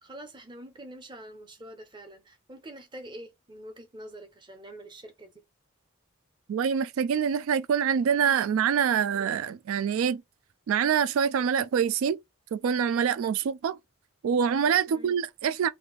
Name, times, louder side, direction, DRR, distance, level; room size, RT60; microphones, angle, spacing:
voice 1, 0.0-5.4 14.9-15.2, right 1 dB, 20° right, 0.7 m, -45 dB
voice 2, 6.5-10.2 10.7-12.2 12.5-13.8 14.2-15.7, right 7 dB, 90° right, 0.3 m, -25 dB
3.5 x 2.5 x 3.9 m
head